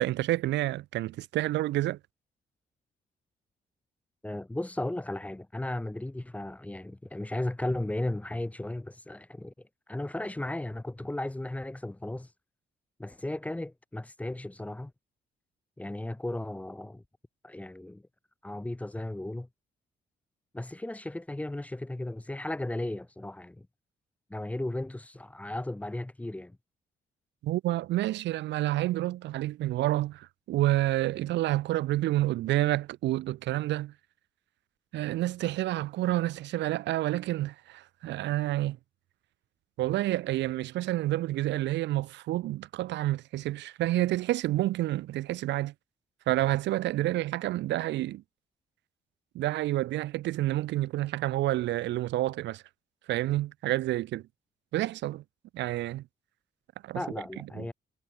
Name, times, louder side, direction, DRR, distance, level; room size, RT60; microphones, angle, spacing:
voice 1, 0.0-2.0 27.4-33.9 34.9-38.8 39.8-45.7 46.3-48.2 49.3-52.6 53.1-54.2 54.7-55.2 55.5-56.0 56.8-57.0 57.5-57.7, right 15 dB, 80° right, 0.4 m, -29 dB
voice 2, 4.2-12.3 13.0-14.9 15.8-17.0 17.4-18.0 18.4-19.5 20.5-23.7 24.3-26.6 56.9-57.7, left 1 dB, 10° left, 0.9 m, -35 dB
cardioid pair, 135°, 18 cm